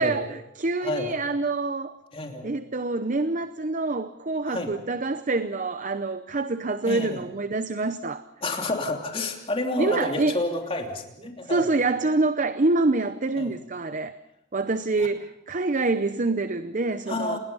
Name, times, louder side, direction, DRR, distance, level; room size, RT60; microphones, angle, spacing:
voice 1, 0.0-2.0 2.4-8.2 9.8-10.4 11.4-14.1 14.5-17.4, right 3 dB, 40° right, 0.7 m, -26 dB
voice 2, 0.8-1.1 2.1-2.5 4.5-4.7 6.9-7.2 8.4-11.7 13.4-13.5 15.0-15.1 17.1-17.4, left 2 dB, 30° left, 3.0 m, -30 dB
28.0 x 20.5 x 5.5 m
head